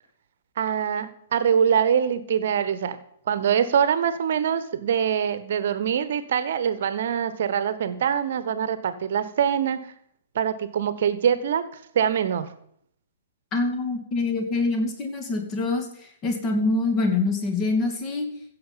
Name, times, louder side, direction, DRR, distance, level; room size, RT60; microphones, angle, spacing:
voice 1, 0.6-3.0 3.3-9.9 10.3-11.6 11.9-12.5, right 8 dB, 55° right, 13 dB, 1.2 m, -24 dB
voice 2, 13.5-18.3, left 3 dB, 25° left, 4 dB, 2.5 m, -25 dB
15.5 x 7.6 x 5.6 m, 0.68 s
figure-of-eight pair, 115°, 0 cm